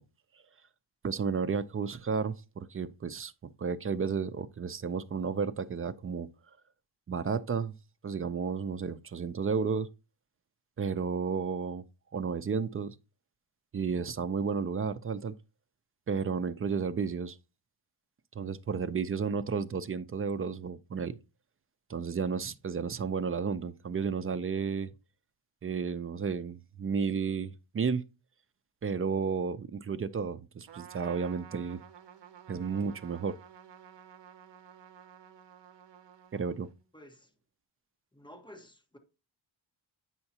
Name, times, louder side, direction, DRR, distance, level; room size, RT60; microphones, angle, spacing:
voice 1, 1.0-6.3 7.1-7.7 8.0-9.9 10.8-11.8 12.1-12.9 13.7-15.3 16.1-17.4 18.3-21.2 21.9-24.9 25.6-28.1 28.8-31.8 32.5-33.4 36.3-36.7, right 5 dB, 30° right, 0.4 m, -32 dB
Trumpet, 30.7-36.8, right 9 dB, 65° right, 0.8 m, -52 dB
voice 2, 36.9-37.3 38.1-39.0, left 1 dB, 10° left, 1.3 m, -52 dB
8.8 x 5.6 x 2.8 m
wide cardioid pair, 125°, 47 cm